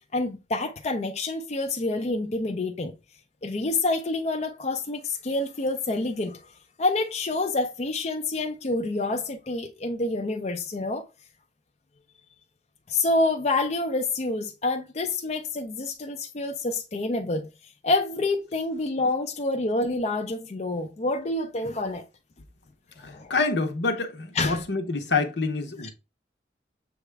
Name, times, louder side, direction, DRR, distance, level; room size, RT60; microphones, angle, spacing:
voice 1, 0.1-2.9 3.4-6.4 6.8-11.1 12.9-17.5 17.8-22.1 23.0-23.3 24.4-24.6 25.8-25.9, left 2 dB, 40° left, 0.5 m, -27 dB
voice 2, 23.0-25.9, left 3 dB, 80° left, 0.9 m, -27 dB
7.0 x 2.3 x 3.2 m
head